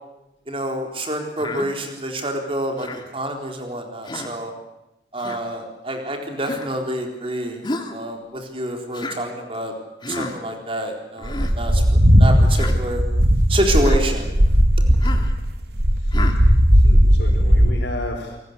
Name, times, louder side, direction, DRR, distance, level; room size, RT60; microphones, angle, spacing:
voice 1, 0.5-2.9 3.1-4.5 5.1-7.6 7.9-9.7 10.1-11.8 12.1-13.0 13.5-14.3, right 1 dB, 30° right, 2 dB, 4.2 m, -27 dB
Human voice, 1.4-1.7 2.8-3.1 4.0-4.4 5.2-5.4 6.4-6.7 7.6-8.0 8.9-9.2 10.0-10.3 11.2-11.5 12.5-12.8 13.7-14.0 15.0-15.3 16.1-16.4, left 2 dB, 25° left, 2.2 m, -31 dB
sound 1, 11.2-17.7, equal, 65° right, 2.6 m, -16 dB
voice 2, 15.9-16.4 16.7-18.4, left 1 dB, 80° left, -4 dB, 4.7 m, -33 dB
28.5 x 19.5 x 8.3 m, 0.92 s
head